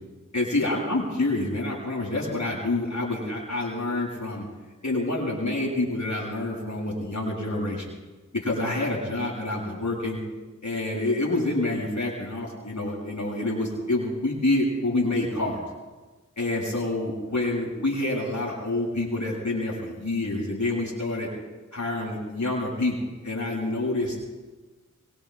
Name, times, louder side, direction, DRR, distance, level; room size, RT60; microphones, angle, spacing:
voice 1, 0.3-4.4 4.8-7.9 8.3-10.2 10.6-15.6 16.4-21.3 21.7-24.2, left 2 dB, 65° left, -5 dB, 6.7 m, -27 dB
24.5 x 23.0 x 2.3 m, 1.2 s
wide cardioid pair, 40°, 31 cm